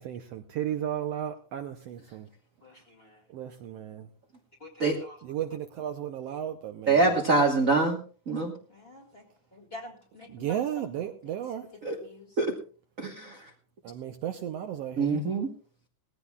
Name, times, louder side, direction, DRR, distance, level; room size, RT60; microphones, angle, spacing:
voice 1, 0.0-2.3 3.3-4.1 5.2-7.1 10.3-11.7 13.8-15.2, right 10 dB, 75° right, 7 dB, 1.6 m, -34 dB
voice 2, 2.6-3.2 4.6-5.2 8.7-9.2 9.5-11.0 11.9-12.4, left 1 dB, 25° left, 0 dB, 1.9 m, -47 dB
voice 3, 6.9-8.0 8.3-8.5 11.8-12.0 12.4-12.5 13.0-13.4 15.0-15.5, right 3 dB, 45° right, 2 dB, 1.1 m, -24 dB
19.5 x 15.5 x 2.3 m, 0.40 s
omnidirectional pair, 3.4 m